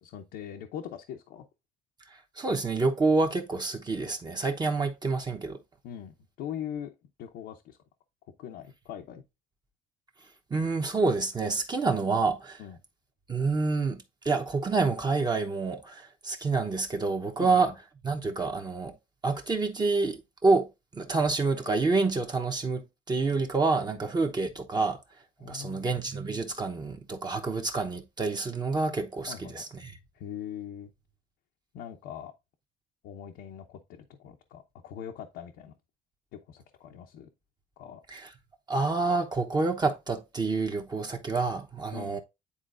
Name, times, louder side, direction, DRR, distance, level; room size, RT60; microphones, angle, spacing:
voice 1, 0.0-1.4 5.8-6.9 7.2-7.8 8.4-9.2 12.6-12.8 17.4-17.7 25.4-25.9 29.3-29.6 30.1-30.9 31.7-32.3 33.0-35.7 36.3-37.3 37.8-38.0 41.9-42.2, left 9 dB, 85° left, 0.8 m, -41 dB
voice 2, 2.1-5.6 10.5-12.6 13.3-17.7 18.0-18.9 19.2-25.0 25.4-29.9 38.1-38.3 38.7-42.2, right 3 dB, 25° right, 0.9 m, -28 dB
9.9 x 3.9 x 2.5 m
cardioid pair, 110°, 17 cm